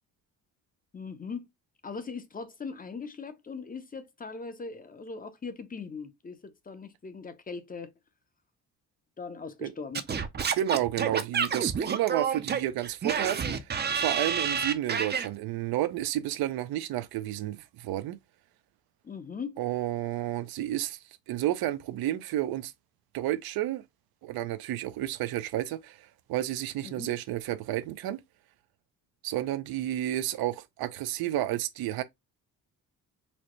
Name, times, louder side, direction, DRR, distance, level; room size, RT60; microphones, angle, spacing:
voice 1, 0.9-1.5 1.8-7.9 9.2-10.0 19.0-19.6 26.8-27.1, left 5 dB, 25° left, 0.6 m, -40 dB
Singing / Scratching (performance technique), 9.9-15.3, right 6 dB, 30° right, 0.5 m, -29 dB
voice 2, 10.5-13.7 14.0-18.2 19.6-21.0 21.3-22.7 23.1-23.8 24.2-28.2 29.2-32.0, right 13 dB, 75° right, 0.5 m, -31 dB
4.1 x 2.1 x 3.0 m
cardioid pair, 100°, 37 cm